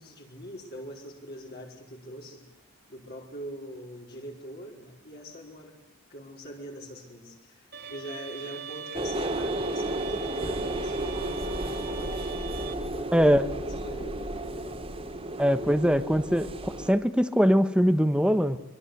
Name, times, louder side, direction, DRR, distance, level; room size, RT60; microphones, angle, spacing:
voice 1, 0.0-2.4 2.9-5.8 6.1-14.8, equal, 45° left, -1 dB, 4.8 m, -43 dB
Bowed string instrument, 7.7-12.7, right 6 dB, 45° right, 2.5 m, -41 dB
sound 1, 8.9-16.9, right 1 dB, 25° right, 2.7 m, -33 dB
voice 2, 13.1-13.4 15.4-18.6, equal, 5° right, 11 dB, 1.2 m, -22 dB
25.5 x 24.5 x 8.1 m, 0.78 s
head